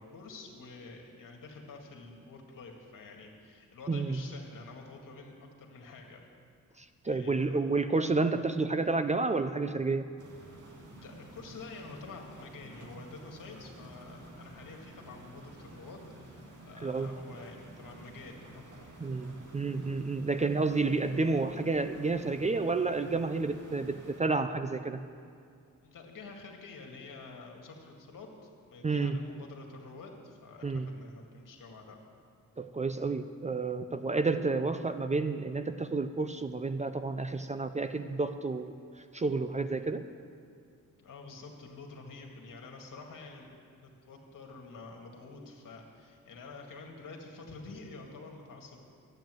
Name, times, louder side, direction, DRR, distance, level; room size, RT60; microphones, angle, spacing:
voice 1, 0.0-6.2 7.0-7.6 10.9-18.8 25.8-32.0 39.8-39.9 41.0-43.5 43.8-48.8, left 3 dB, 70° left, 1 dB, 2.0 m, -48 dB
voice 2, 3.9-4.2 7.0-10.1 16.8-17.1 19.0-25.0 28.8-29.2 30.6-30.9 32.6-38.7 39.1-40.0, right 3 dB, 20° right, 9 dB, 0.5 m, -30 dB
sound 1, 10.2-24.2, right 2 dB, 65° right, 2.2 m, -51 dB
11.5 x 8.9 x 7.7 m, 2.3 s
wide cardioid pair, 115°, 33 cm